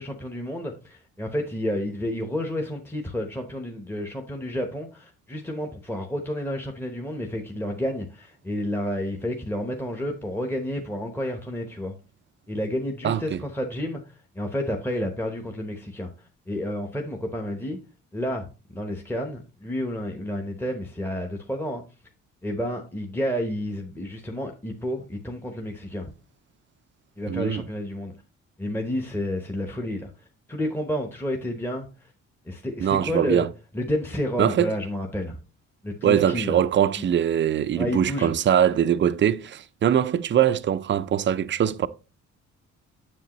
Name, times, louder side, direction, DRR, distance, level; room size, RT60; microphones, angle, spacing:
voice 1, 0.0-11.9 12.5-14.0 14.3-16.1 16.5-17.8 18.1-18.4 18.7-21.8 22.4-26.1 27.2-28.1 28.6-30.1 30.5-31.9 32.5-33.5 33.7-35.4 35.8-36.6 37.0-37.1 37.8-38.3, equal, 5° left, 1.0 m, -30 dB
voice 2, 13.0-13.4 27.3-27.6 32.8-33.5 34.4-34.7 36.0-41.9, right 9 dB, 40° right, 0.5 m, -22 dB
7.4 x 6.8 x 3.0 m
cardioid pair, 90°, 30 cm